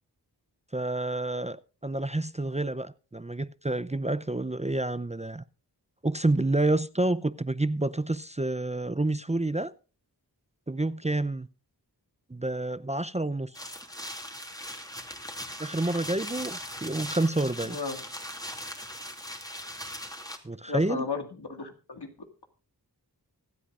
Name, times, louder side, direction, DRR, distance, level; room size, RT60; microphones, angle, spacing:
voice 1, 0.7-1.6 1.8-5.4 6.0-9.7 10.7-11.5 12.3-13.5 15.6-17.8 20.4-21.0, right 2 dB, 15° right, 0.6 m, -28 dB
sound 1, 13.5-20.4, equal, 10° left, 2.4 m, -39 dB
voice 2, 17.6-18.0 20.7-22.1, left 4 dB, 75° left, 2.2 m, -34 dB
25.0 x 8.5 x 2.5 m
wide cardioid pair, 55°, 40 cm